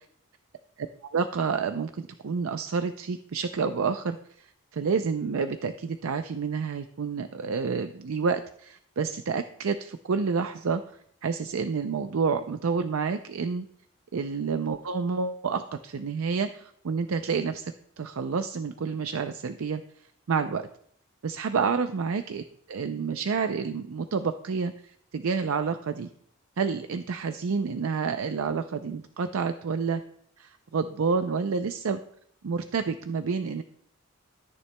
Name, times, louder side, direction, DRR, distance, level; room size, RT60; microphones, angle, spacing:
voice 1, 1.1-10.8 11.2-13.7 14.1-19.8 20.3-20.7 21.2-26.1 26.6-30.0 30.4-32.0 32.4-33.6, right 5 dB, 75° right, 8 dB, 0.4 m, -29 dB
14.0 x 9.6 x 2.2 m, 0.67 s
head